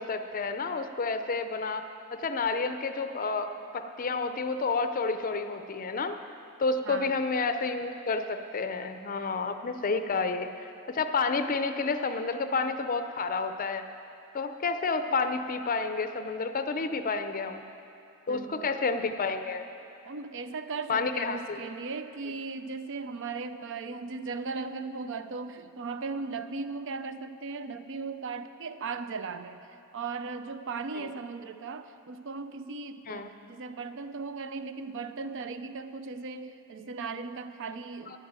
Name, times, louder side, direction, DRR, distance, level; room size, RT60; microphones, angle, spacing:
voice 1, 0.0-1.8 2.2-6.2 6.6-10.5 10.9-13.9 14.3-17.6 18.3-19.7 20.9-21.6 31.0-31.1 33.1-33.3 38.1-38.2, left 4 dB, 40° left, 8 dB, 0.5 m, -30 dB
voice 2, 18.3-18.7 20.1-29.6 29.9-38.2, right 4 dB, 60° right, 11 dB, 0.5 m, -37 dB
11.0 x 8.8 x 8.9 m, 2.8 s
head